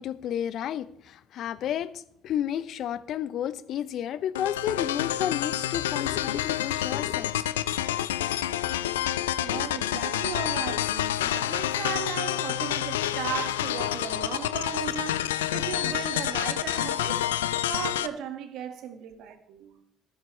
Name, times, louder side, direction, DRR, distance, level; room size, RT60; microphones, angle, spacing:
voice 1, 0.0-7.3, left 10 dB, 55° left, 0.8 m, -31 dB
sound 1, 4.4-18.1, left 12 dB, 80° left, 0.5 m, -28 dB
voice 2, 9.4-17.3 17.7-19.8, right 8 dB, 60° right, 1.8 m, -36 dB
15.0 x 13.5 x 3.3 m
figure-of-eight pair, 55°, 0 cm